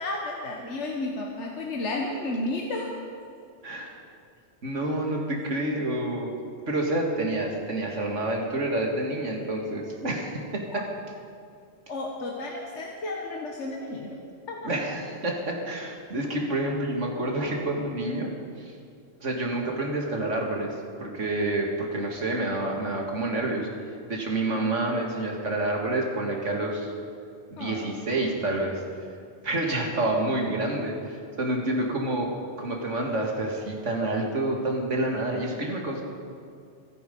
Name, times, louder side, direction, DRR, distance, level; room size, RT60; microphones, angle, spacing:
voice 1, 0.0-2.9 10.7-10.8 11.9-14.2 14.5-14.7 27.6-27.9, left 2 dB, 75° left, 0 dB, 1.7 m, -32 dB
voice 2, 3.6-4.0 4.6-6.3 6.7-10.8 14.6-18.3 18.6-18.7 19.2-23.7 24.1-26.9 27.5-28.8 29.4-36.0, right 2 dB, 90° right, 0 dB, 2.6 m, -28 dB
26.0 x 9.1 x 5.4 m, 2.4 s
omnidirectional pair, 1.2 m